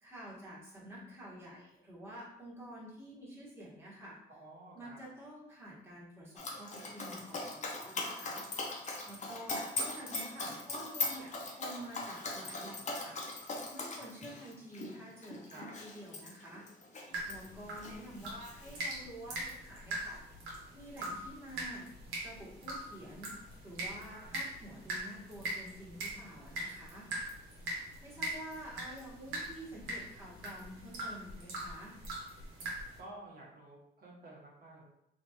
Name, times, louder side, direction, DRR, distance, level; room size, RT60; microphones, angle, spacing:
voice 1, 0.0-4.2 4.7-8.5 9.1-13.2 13.7-16.6 17.3-20.2 20.7-21.9 22.2-23.3 23.6-27.1 28.0-31.9, right 1 dB, 10° right, -7 dB, 1.3 m, -49 dB
voice 2, 4.3-5.0 14.2-14.6 15.0-15.1 15.5-15.7 23.8-24.3 33.0-34.8, right 1 dB, 50° right, -4 dB, 1.2 m, -52 dB
Dog, 6.4-17.5 17.8-18.8, left 2 dB, 35° left, 0.7 m, -40 dB
sound 1, 17.1-33.0, right 1 dB, 90° right, 1.0 m, -42 dB
3.0 x 2.6 x 2.8 m, 0.83 s
cardioid pair, 90°, 20 cm